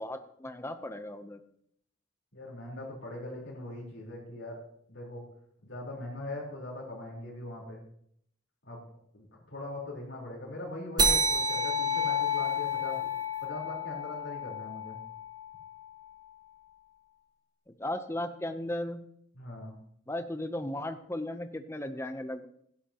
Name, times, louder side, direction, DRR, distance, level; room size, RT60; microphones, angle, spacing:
voice 1, 0.0-1.4 17.8-19.1 20.1-22.5, left 1 dB, 15° left, 8 dB, 0.7 m, -36 dB
voice 2, 2.3-4.6 4.9-5.2 5.6-7.8 8.6-8.8 9.1-13.0 13.4-15.0 19.3-19.8, left 1 dB, 75° left, -5 dB, 4.0 m, -41 dB
sound 1, 11.0-15.9, left 1 dB, 20° right, 1.4 m, -30 dB
16.5 x 11.5 x 2.9 m, 0.68 s
head